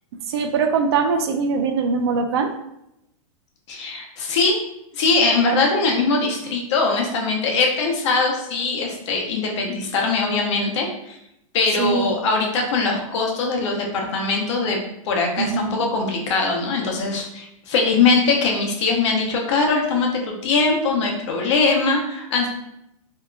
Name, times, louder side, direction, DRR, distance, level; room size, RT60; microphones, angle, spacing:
voice 1, 0.3-2.5 11.8-12.1 15.4-15.9, right 5 dB, 50° right, 6 dB, 0.4 m, -22 dB
voice 2, 3.7-4.6 4.9-11.2 11.5-14.8 15.1-22.5, left 4 dB, 55° left, 1 dB, 0.8 m, -21 dB
3.6 x 2.8 x 2.3 m, 0.82 s
hypercardioid pair, 155°, 18 cm